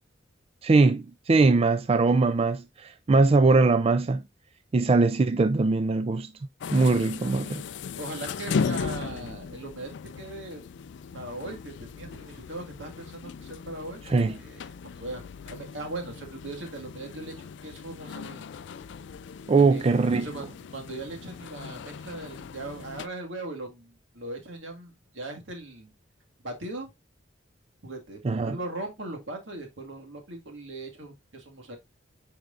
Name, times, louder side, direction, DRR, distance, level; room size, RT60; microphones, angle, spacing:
voice 1, 0.6-4.2 4.7-6.3 6.7-7.6 14.1-14.3 19.5-20.3 28.2-28.6, right 3 dB, 30° right, 0.4 m, -21 dB
sound 1, 6.6-23.1, left 5 dB, 65° left, 0.4 m, -37 dB
voice 2, 8.0-9.9 10.2-10.6 11.1-14.0 14.4-14.7 15.0-18.5 19.6-19.9 20.1-25.9 26.4-26.9 27.8-31.8, right 2 dB, 80° right, 1.9 m, -39 dB
9.1 x 4.7 x 2.5 m
head